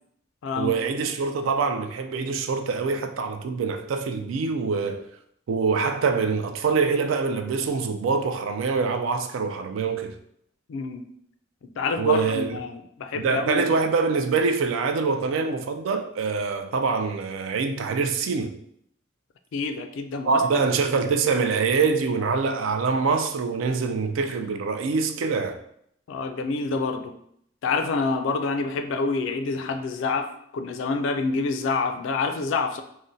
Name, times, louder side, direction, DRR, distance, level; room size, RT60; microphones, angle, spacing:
voice 1, 0.6-5.1 5.5-10.2 12.0-12.6 13.2-18.5 20.3-25.6, right 5 dB, 75° right, 0.3 m, -25 dB
voice 2, 10.7-11.1 11.8-13.6 19.5-20.6 20.9-21.0 26.1-27.1 27.6-32.8, left 4 dB, 70° left, 0.3 m, -27 dB
2.6 x 2.1 x 3.7 m
head